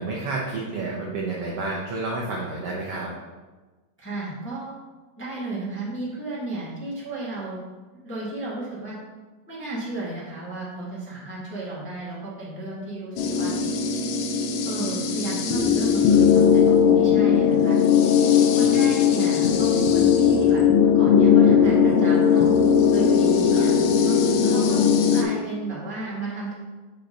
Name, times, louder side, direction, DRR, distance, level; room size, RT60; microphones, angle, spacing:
voice 1, 0.0-3.1 18.6-18.9 23.5-23.7, right 3 dB, 80° right, -3 dB, 1.3 m, -30 dB
voice 2, 4.0-4.7 5.2-7.6 8.0-8.9 9.5-13.5 14.6-17.8 18.5-22.5 22.9-23.8 24.0-24.8 25.1-26.5, right 2 dB, 5° left, -8 dB, 1.0 m, -33 dB
sound 1, 13.2-25.2, left 7 dB, 85° left, 2.4 m, -18 dB
6.9 x 5.7 x 3.9 m, 1.3 s
omnidirectional pair, 3.9 m